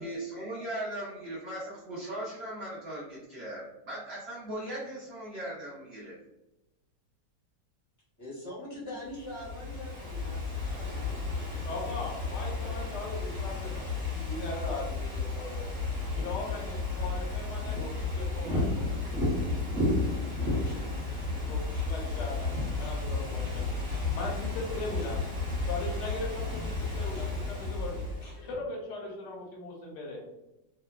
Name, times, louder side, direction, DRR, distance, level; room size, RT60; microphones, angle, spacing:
voice 1, 0.0-6.2, right 1 dB, 65° right, -7 dB, 0.6 m, -38 dB
voice 2, 8.2-11.9 12.3-12.4 12.6-12.7, left 1 dB, 15° left, -7 dB, 0.6 m, -44 dB
Ocean / Fireworks, 9.1-28.4, left 3 dB, 50° right, 1.3 m, -33 dB
voice 3, 11.6-15.7 16.1-19.0 20.8-20.9 21.5-23.7 24.1-25.2 25.6-28.0 28.4-30.3, left 2 dB, 75° left, -2 dB, 1.3 m, -39 dB
sound 1, 20.5-28.5, right 3 dB, 55° left, 0.9 m, -41 dB
2.9 x 2.2 x 2.2 m, 0.95 s
omnidirectional pair, 1.9 m